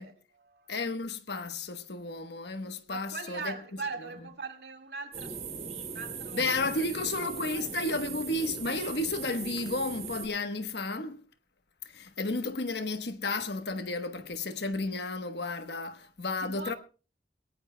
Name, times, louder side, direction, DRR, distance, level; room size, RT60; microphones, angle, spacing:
voice 1, 0.0-0.7 2.9-6.8 7.2-7.7 12.0-12.2 16.4-16.8, right 4 dB, 75° right, 2.0 m, -41 dB
voice 2, 0.7-3.5 6.3-11.2 11.9-16.7, left 2 dB, 75° left, 1.1 m, -32 dB
sound 1, 5.1-10.3, right 5 dB, 40° right, 4.4 m, -39 dB
22.0 x 18.0 x 2.2 m
head